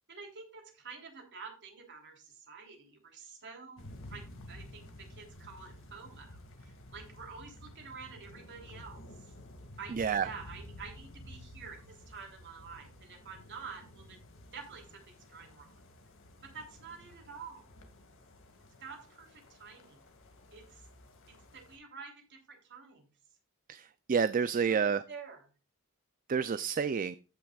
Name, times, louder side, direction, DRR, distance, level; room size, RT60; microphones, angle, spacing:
voice 1, 0.1-6.3 6.6-9.3 9.8-14.2 14.5-15.7 16.4-17.7 18.8-20.1 20.5-20.8 21.5-23.0 24.7-25.5, right 5 dB, 55° right, 2 dB, 3.3 m, -49 dB
sound 1, 3.8-21.8, left 1 dB, 60° left, 2.0 m, -52 dB
voice 2, 9.9-10.3 23.7-25.0 26.3-27.2, right 6 dB, 40° right, 13 dB, 0.4 m, -29 dB
15.0 x 6.0 x 2.3 m, 0.32 s
head